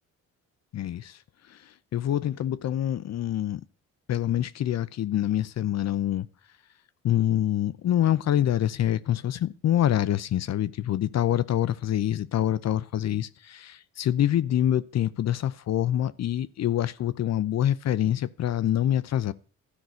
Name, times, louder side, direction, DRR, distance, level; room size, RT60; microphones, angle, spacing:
voice 1, 0.7-1.1 1.9-3.6 4.1-6.3 7.0-19.3, left 11 dB, 60° left, 0.7 m, -26 dB
13.0 x 6.1 x 9.5 m
cardioid pair, 90°, 30 cm